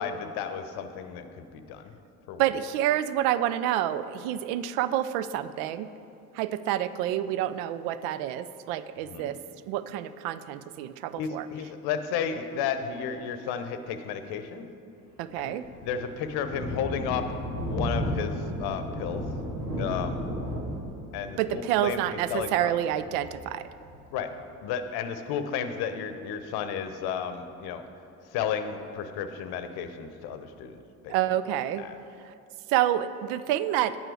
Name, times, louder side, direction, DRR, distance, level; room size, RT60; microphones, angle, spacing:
voice 1, 0.0-1.9 2.3-2.4 9.1-9.3 11.2-14.7 15.4-17.3 17.7-19.2 19.8-20.2 21.1-22.7 24.1-24.3 24.6-27.8 28.3-30.8 31.0-31.1 31.7-32.0, left 7 dB, 60° left, 9 dB, 0.8 m, -33 dB
voice 2, 2.4-5.9 6.4-9.4 9.7-11.5 15.2-15.6 21.4-23.6 31.1-31.9 32.7-34.0, right 12 dB, 65° right, 14 dB, 0.5 m, -28 dB
Thunder, 15.2-24.3, equal, 90° right, 1.3 m, -34 dB
10.5 x 8.8 x 3.4 m, 2.6 s
figure-of-eight pair, 50°, 44 cm